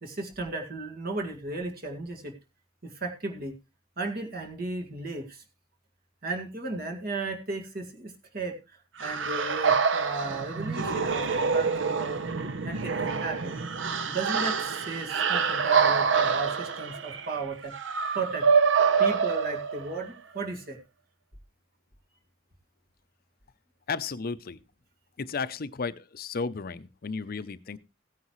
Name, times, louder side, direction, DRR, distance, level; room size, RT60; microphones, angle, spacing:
voice 1, 0.0-2.3 2.8-3.6 4.0-5.4 6.2-12.2 12.6-13.6 14.1-17.7 18.1-18.5 19.0-20.8, right 3 dB, 50° right, 3 dB, 2.0 m, -35 dB
sound 1, 9.0-20.1, right 5 dB, 70° right, 0.8 m, -26 dB
voice 2, 23.9-24.6 25.2-27.8, left 4 dB, 50° left, 14 dB, 0.6 m, -33 dB
16.0 x 9.5 x 3.1 m, 0.28 s
head